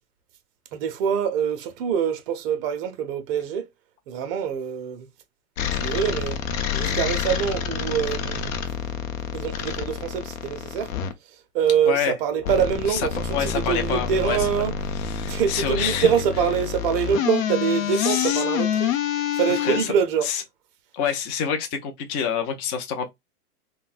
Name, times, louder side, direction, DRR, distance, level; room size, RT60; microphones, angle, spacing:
voice 1, 0.7-3.7 4.1-5.1 5.7-6.4 6.7-8.5 9.3-10.9 11.2-15.0 15.3-20.3, right 8 dB, 40° right, 0.7 m, -25 dB
sound 1, 5.6-11.1 12.4-19.8, left 8 dB, 60° left, 0.7 m, -27 dB
voice 2, 13.3-14.4 15.2-16.1 18.0-18.4 19.7-19.8 20.2-20.4 20.9-23.1, left 7 dB, 20° left, 0.5 m, -27 dB
3.8 x 2.2 x 2.4 m
hypercardioid pair, 125°, 46 cm